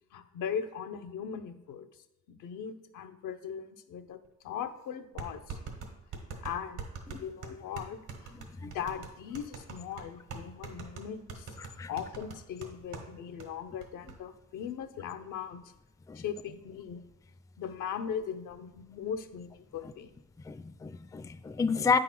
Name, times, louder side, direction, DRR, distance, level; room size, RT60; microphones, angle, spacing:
voice 1, 0.1-1.9 2.3-4.2 4.4-5.6 6.4-11.5 11.9-15.7 16.1-17.0 17.6-20.1, left 8 dB, 85° left, 8 dB, 0.7 m, -39 dB
sound 1, 4.2-4.3 5.2-13.1 13.4-13.5 13.8-14.2, right 5 dB, 85° right, 1.6 m, -43 dB
voice 2, 20.5-22.0, left 5 dB, 10° left, 12 dB, 0.3 m, -29 dB
8.9 x 3.9 x 5.8 m, 0.89 s
cardioid pair, 90°, 30 cm